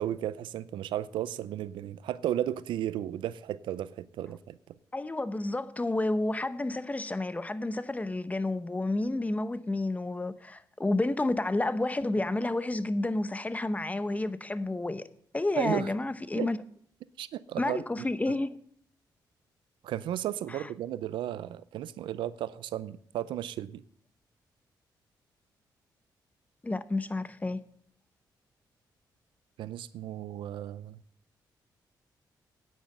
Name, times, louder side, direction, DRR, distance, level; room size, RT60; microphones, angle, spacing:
voice 1, 0.0-4.6 15.6-15.9 16.4-16.5 17.2-17.8 19.8-23.8 29.6-31.0, right 11 dB, 90° right, 0.5 m, -34 dB
voice 2, 4.9-15.1 15.3-16.6 17.6-18.6 20.5-20.7 26.6-27.6, left 2 dB, 20° left, 0.8 m, -30 dB
9.5 x 9.3 x 7.7 m
cardioid pair, 75°, 8 cm